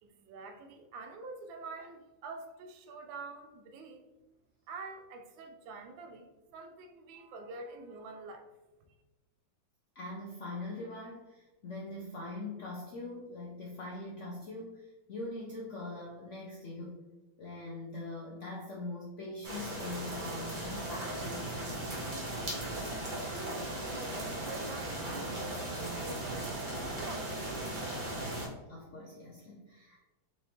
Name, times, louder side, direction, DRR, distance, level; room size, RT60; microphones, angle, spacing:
voice 1, 0.0-4.1 4.7-8.5 8.8-8.9 23.3-27.7, right 3 dB, 90° right, 6 dB, 1.4 m, -47 dB
voice 2, 10.0-17.0 17.4-21.7 28.7-30.0, left 2 dB, 80° left, -3 dB, 0.6 m, -42 dB
sound 1, 19.4-28.5, right 1 dB, 55° right, 0.5 m, -37 dB
4.4 x 3.1 x 2.8 m, 1.1 s
omnidirectional pair, 2.1 m